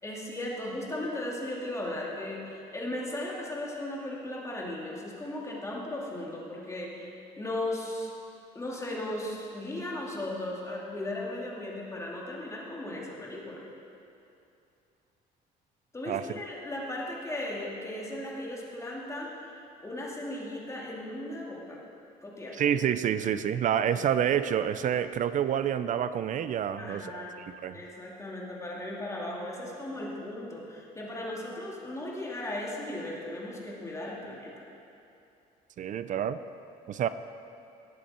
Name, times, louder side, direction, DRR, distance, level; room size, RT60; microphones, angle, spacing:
voice 1, 0.0-8.1 8.5-13.6 15.9-19.5 19.8-21.8 22.2-22.6 23.9-24.0 26.8-27.4 27.7-34.6, left 1 dB, 15° left, -4 dB, 2.5 m, -36 dB
voice 2, 22.6-27.2 27.6-27.8 35.8-36.4 36.9-37.1, right 9 dB, 50° right, 13 dB, 0.5 m, -28 dB
18.5 x 8.3 x 4.4 m, 2.7 s
cardioid pair, 110°, 17 cm